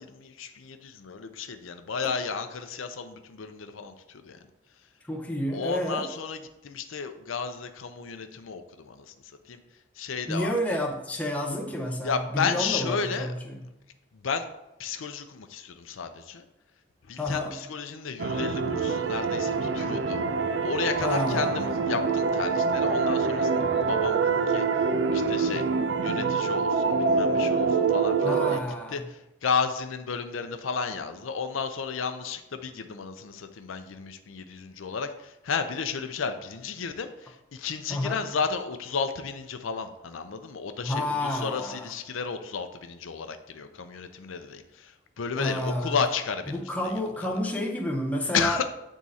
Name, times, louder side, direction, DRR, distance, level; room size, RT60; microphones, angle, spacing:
voice 1, 0.0-3.9 4.2-4.4 5.5-6.4 6.6-9.1 9.5-9.6 10.0-10.8 12.0-13.3 14.2-14.5 14.8-16.4 17.1-20.3 20.6-24.6 25.1-25.6 26.0-28.6 28.9-46.5 46.8-46.9 48.3-48.7, left 5 dB, 90° left, 0.5 m, -33 dB
voice 2, 5.1-6.1 10.3-13.7 17.2-17.6 21.0-21.5 28.2-29.1 37.9-38.2 40.8-41.9 45.4-46.0 46.5-48.6, left 1 dB, 5° left, 0.6 m, -30 dB
sound 1, 18.2-28.6, right 4 dB, 70° right, 0.5 m, -25 dB
7.7 x 3.6 x 4.1 m
head